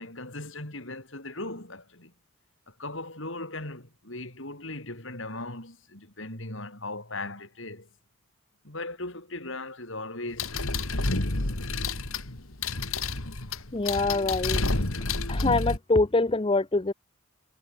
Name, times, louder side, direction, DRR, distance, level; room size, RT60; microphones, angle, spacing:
voice 1, 0.0-2.1 2.7-7.9 8.6-10.9 11.4-11.5, left 2 dB, 60° left, 5.7 m, -38 dB
sound 1, 10.4-15.8, left 3 dB, 75° left, 3.1 m, -29 dB
voice 2, 13.7-14.6 15.3-16.9, left 3 dB, 25° left, 0.6 m, -24 dB
head